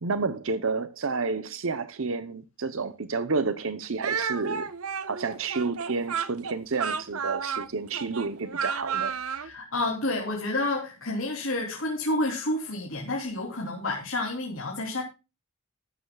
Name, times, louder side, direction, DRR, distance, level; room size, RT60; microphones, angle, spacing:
voice 1, 0.0-4.7 5.1-9.1, right 4 dB, 60° right, 0.8 m, -30 dB
Speech, 4.0-9.5, right 6 dB, 75° right, 1.1 m, -32 dB
voice 2, 9.4-15.0, left 2 dB, 60° left, 3.3 m, -29 dB
14.0 x 13.0 x 2.3 m
head